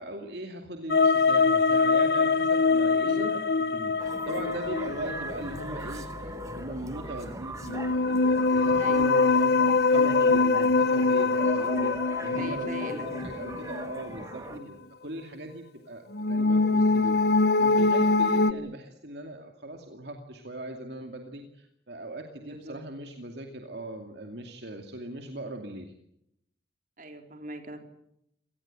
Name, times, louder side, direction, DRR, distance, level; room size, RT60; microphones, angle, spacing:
voice 1, 0.0-3.4 3.7-11.9 12.2-17.2 17.6-25.9, right 1 dB, 60° right, 4 dB, 2.5 m, -39 dB
sound 1, 0.9-5.7 7.6-14.0 16.1-18.5, left 3 dB, 55° left, 1.0 m, -23 dB
voice 2, 2.9-3.4 8.8-9.3 12.3-13.1 14.4-14.7 18.3-18.7 22.4-22.8 27.0-27.8, right 1 dB, 45° right, 5 dB, 4.0 m, -40 dB
sound 2, 4.0-14.6, right 1 dB, 15° right, 1.5 m, -40 dB
26.5 x 19.0 x 8.9 m, 0.79 s
head